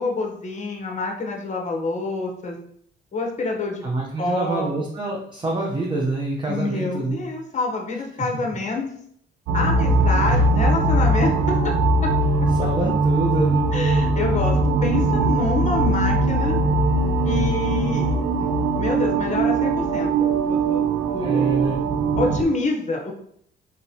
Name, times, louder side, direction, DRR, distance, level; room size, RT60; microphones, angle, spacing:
voice 1, 0.0-2.6 3.1-3.8 4.2-4.7 6.5-8.9 9.5-11.6 12.0-12.1 12.4-12.5 13.7-16.6 17.2-21.6 22.2-23.1, left 3 dB, 35° left, 1 dB, 1.0 m, -27 dB
voice 2, 3.8-7.2 8.2-8.3 10.3-10.4 12.5-13.6 21.2-21.8, right 2 dB, 25° right, -2 dB, 0.8 m, -26 dB
sound 1, 9.5-22.4, right 2 dB, 80° right, 0.6 m, -20 dB
3.9 x 3.7 x 2.8 m, 0.66 s
cardioid pair, 90°, 20 cm